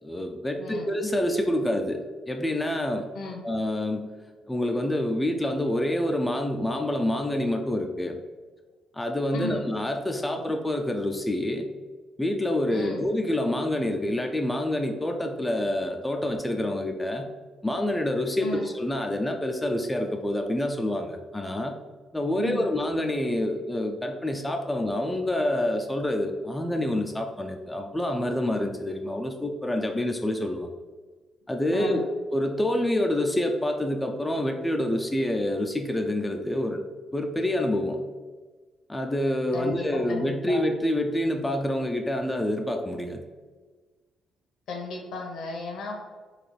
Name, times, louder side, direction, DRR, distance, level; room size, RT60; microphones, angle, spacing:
voice 1, 0.0-2.0 2.3-3.1 3.4-4.1 4.5-8.2 8.9-11.7 12.2-17.2 17.6-21.8 22.1-30.7 31.5-36.8 37.1-38.0 38.9-43.2, left 1 dB, 10° left, 4 dB, 0.3 m, -27 dB
voice 2, 0.6-0.9 3.1-3.4 9.3-9.6 12.7-13.0 18.4-18.6 22.4-22.7 31.7-32.0 39.5-40.7 44.7-45.9, left 2 dB, 80° left, 0 dB, 0.9 m, -35 dB
4.0 x 2.4 x 3.2 m, 1.4 s
cardioid pair, 90°, 0 cm